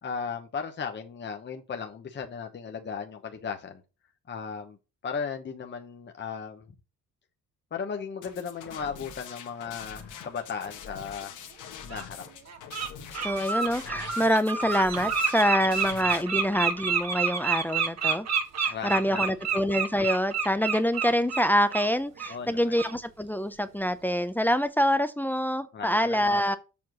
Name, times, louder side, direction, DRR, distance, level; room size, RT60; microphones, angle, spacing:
voice 1, 0.0-3.8 4.3-4.8 5.0-6.7 7.7-11.3 11.8-12.2 18.7-19.3 22.3-22.8 25.7-26.4, left 6 dB, 35° left, 1.0 m, -36 dB
sound 1, 8.2-16.2, left 8 dB, 80° left, 1.4 m, -44 dB
Bird, 11.1-11.2 11.9-12.0 12.5-12.9 13.1-21.9 22.2-22.4 22.8-22.9, right 6 dB, 60° right, 1.5 m, -29 dB
voice 2, 13.2-18.3 18.6-26.6, equal, 5° left, 0.7 m, -26 dB
7.3 x 4.5 x 6.1 m
cardioid pair, 90°, 30 cm